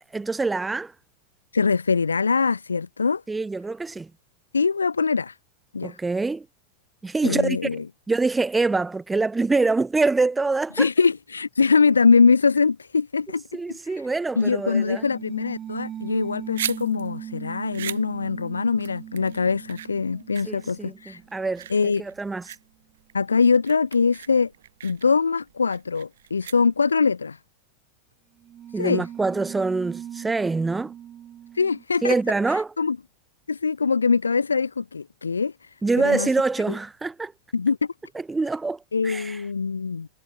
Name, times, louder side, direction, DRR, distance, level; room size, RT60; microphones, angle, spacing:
voice 1, 0.1-0.9 3.3-4.1 5.8-6.5 7.0-10.9 13.5-15.0 20.4-22.5 28.7-30.9 32.0-32.7 35.8-37.3 38.1-39.4, right 3 dB, 10° right, 0.8 m, -25 dB
voice 2, 1.5-3.2 4.5-5.4 5.7-6.0 7.2-7.8 10.8-13.4 14.4-21.2 21.7-22.0 23.1-24.5 24.8-27.4 28.8-29.1 31.5-32.1 32.5-33.0 33.5-35.7 36.0-36.3 37.5-37.8 38.9-40.1, left 5 dB, 75° left, 0.4 m, -22 dB
sound 1, 14.3-21.8 28.4-31.8, right 10 dB, 25° right, 1.7 m, -40 dB
sound 2, 16.2-27.1, right 10 dB, 60° right, 2.4 m, -39 dB
figure-of-eight pair, 90°, 0 cm